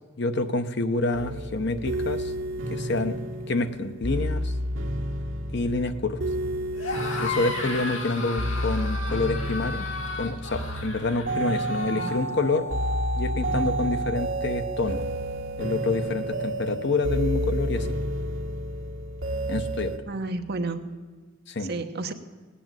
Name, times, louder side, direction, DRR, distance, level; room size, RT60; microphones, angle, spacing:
voice 1, 0.2-2.3 2.7-3.2 3.5-4.5 5.5-6.2 7.2-9.8 10.2-12.6 13.2-15.0 15.6-18.0 19.5-19.9 21.5-21.7, left 3 dB, 60° left, 9 dB, 0.9 m, -27 dB
sound 1, 1.1-20.0, right 1 dB, 75° right, 1.5 m, -30 dB
sound 2, 6.7-12.2, left 3 dB, 80° left, 2.5 m, -34 dB
voice 2, 11.9-12.5 20.0-20.9 21.6-22.1, right 3 dB, 55° right, 7 dB, 1.0 m, -32 dB
18.0 x 8.7 x 9.0 m, 1.4 s
head